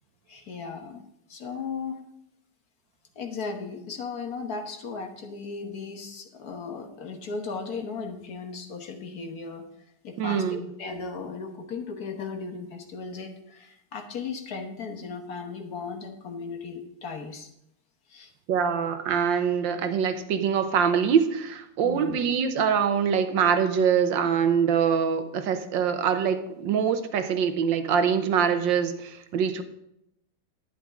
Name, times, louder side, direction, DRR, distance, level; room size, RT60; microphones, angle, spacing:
voice 1, 0.3-1.0 1.3-2.0 3.1-9.6 10.0-17.5 18.1-18.3 21.8-22.2, left 5 dB, 55° left, 4 dB, 1.6 m, -36 dB
voice 2, 10.2-10.7 18.5-29.6, right 7 dB, 80° right, 9 dB, 1.6 m, -24 dB
11.0 x 9.8 x 3.7 m, 0.79 s
omnidirectional pair, 2.0 m